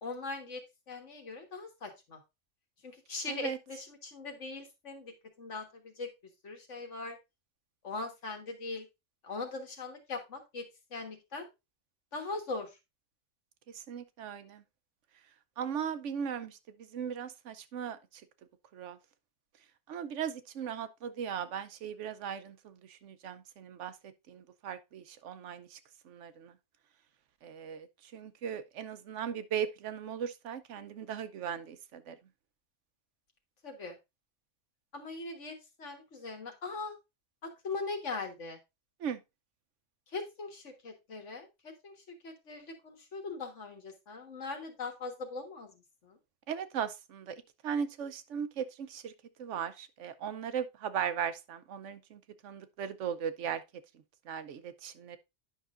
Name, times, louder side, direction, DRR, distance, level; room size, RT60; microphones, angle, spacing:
voice 1, 0.0-0.6 0.9-2.2 2.8-6.1 6.4-7.2 7.8-8.9 9.2-10.7 10.9-11.5 12.1-12.8 33.6-34.0 34.9-36.9 37.4-38.6 40.1-46.2, left 3 dB, 85° left, 1.8 m, -40 dB
voice 2, 13.7-14.6 15.6-18.2 18.7-19.0 19.9-23.9 24.3-25.8 26.0-26.5 27.4-32.2 39.0-39.2 46.5-47.4 47.6-49.1 49.4-53.6 54.3-55.2, right 8 dB, 85° right, 1.0 m, -38 dB
10.0 x 5.7 x 2.5 m
omnidirectional pair, 1.2 m